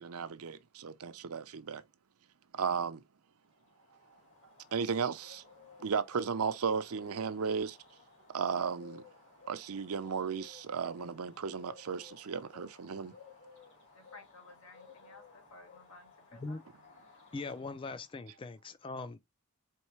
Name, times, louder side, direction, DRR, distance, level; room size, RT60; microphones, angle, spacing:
voice 1, 0.0-1.8 2.5-3.0 4.7-5.4 5.8-7.8 8.3-9.0 9.5-13.1, right 6 dB, 80° right, 0.6 m, -35 dB
Bird, 3.6-18.3, left 5 dB, 60° left, 2.1 m, -58 dB
voice 2, 13.9-16.6, left 3 dB, 85° left, 1.7 m, -55 dB
voice 3, 17.3-19.2, left 3 dB, 25° left, 0.3 m, -41 dB
4.5 x 3.1 x 3.1 m
head